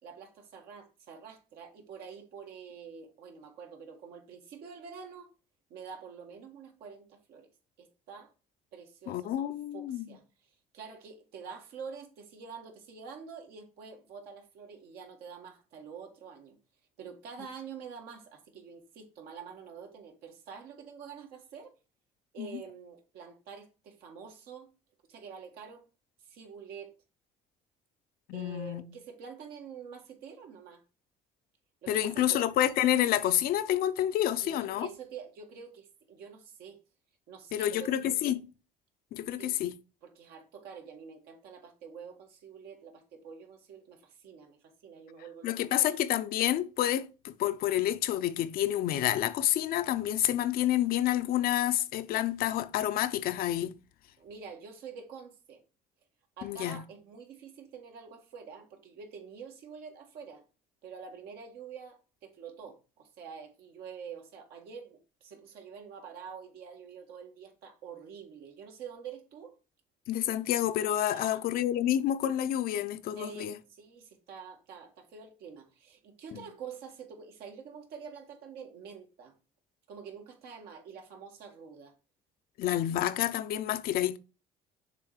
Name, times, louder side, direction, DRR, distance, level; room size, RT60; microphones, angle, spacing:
voice 1, 0.0-5.3 5.7-7.5 7.8-8.3 8.7-10.2 10.7-16.6 17.0-21.7 22.3-24.7 25.1-25.8 26.2-26.9 28.3-30.8 31.8-32.4 34.4-36.8 37.3-38.4 39.4-39.6 40.0-45.9 54.2-55.6 56.4-60.4 60.8-69.6 71.1-71.4 73.2-79.3 79.9-81.9, right 6 dB, 75° right, 1.7 m, -47 dB
voice 2, 9.1-10.0 22.4-22.6 28.3-28.8 31.9-34.9 37.5-38.4 39.1-39.7 45.4-53.8 56.4-56.8 70.1-73.6 76.3-76.4 82.6-84.2, left 12 dB, 70° left, 0.6 m, -29 dB
6.8 x 3.2 x 4.8 m
cardioid pair, 100°, 16 cm